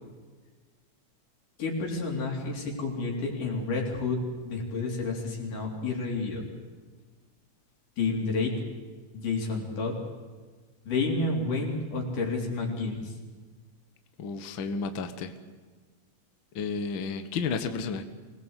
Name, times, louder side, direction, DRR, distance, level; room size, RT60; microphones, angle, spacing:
voice 1, 1.6-4.2 4.4-6.4 8.0-8.5 9.1-10.0 10.9-13.1, left 3 dB, 80° left, -1 dB, 5.4 m, -30 dB
voice 2, 14.2-15.3 16.5-18.0, left 5 dB, 50° left, 8 dB, 1.6 m, -32 dB
25.0 x 18.5 x 8.2 m, 1.5 s
omnidirectional pair, 3.6 m